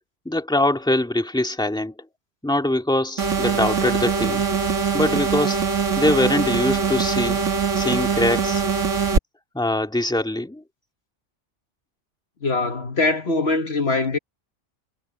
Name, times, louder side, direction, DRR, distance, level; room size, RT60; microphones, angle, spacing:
voice 1, 0.3-2.0 2.4-4.4 4.9-5.6 6.0-7.4 7.8-8.6 9.5-10.6, left 1 dB, 5° left, 2.0 m, -23 dB
sound 1, 3.2-9.2, right 5 dB, 85° right, 2.2 m, -22 dB
voice 2, 12.4-14.2, left 3 dB, 60° left, 1.8 m, -22 dB
omnidirectional pair, 1.3 m